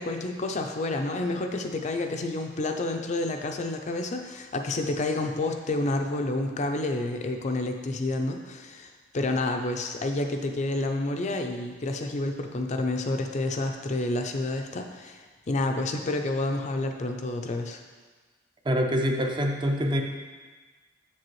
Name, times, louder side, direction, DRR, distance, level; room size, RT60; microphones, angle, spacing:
voice 1, 0.0-8.9 9.1-17.8, left 2 dB, 40° left, 4 dB, 0.5 m, -29 dB
voice 2, 18.6-20.0, equal, 25° right, 3 dB, 0.5 m, -25 dB
7.4 x 7.0 x 3.1 m, 1.4 s
head